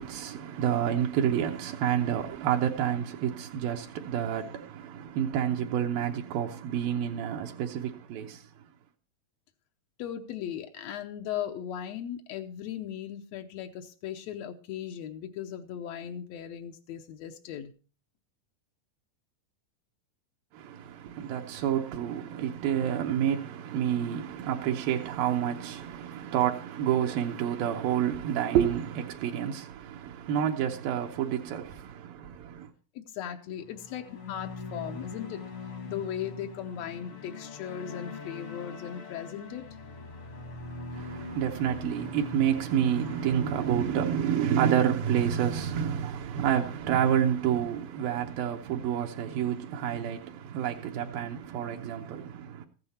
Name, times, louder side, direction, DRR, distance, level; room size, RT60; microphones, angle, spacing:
voice 1, 0.0-8.4 20.5-32.7 40.9-52.7, right 9 dB, 80° right, 2.7 m, -29 dB
voice 2, 10.0-17.7 32.9-35.4 35.8-39.6, left 10 dB, 85° left, 1.5 m, -37 dB
sound 1, 33.5-46.0, left 3 dB, 45° left, 0.8 m, -43 dB
14.5 x 9.5 x 4.2 m
omnidirectional pair, 4.1 m